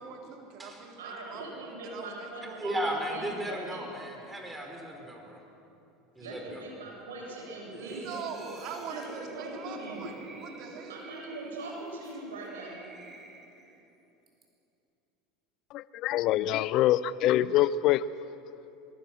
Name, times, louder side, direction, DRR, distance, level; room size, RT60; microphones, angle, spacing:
voice 1, 0.0-2.3 2.6-3.1 7.9-10.1 10.4-11.0, right 6 dB, 55° right, 1 dB, 3.8 m, -42 dB
voice 2, 1.0-3.8 6.2-8.1 8.8-10.0 10.9-12.8, right 2 dB, 80° right, -2 dB, 7.6 m, -42 dB
voice 3, 2.4-5.4 6.1-6.6, equal, 10° right, 2 dB, 5.2 m, -35 dB
sound 1, 7.7-13.8 14.3-14.4, right 2 dB, 30° right, 5.6 m, -47 dB
voice 4, 15.7-18.0, left 13 dB, 55° left, 18 dB, 0.6 m, -25 dB
24.5 x 22.0 x 6.4 m, 2.9 s
hypercardioid pair, 80°, 0 cm